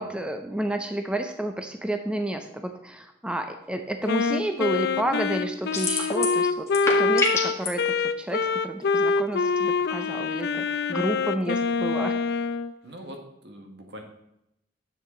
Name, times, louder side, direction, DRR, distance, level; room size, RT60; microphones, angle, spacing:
voice 1, 0.0-6.7 7.0-12.1, right 1 dB, 5° right, 6 dB, 0.5 m, -30 dB
Wind instrument woodwind instrument, 4.1-12.7, left 4 dB, 60° left, 0.4 m, -25 dB
sound 1, 5.7-6.4 6.7-7.7, left 3 dB, 15° left, 1.7 m, -26 dB
voice 2, 12.8-14.0, equal, 60° right, 3 dB, 1.6 m, -42 dB
10.0 x 7.6 x 3.8 m, 0.81 s
head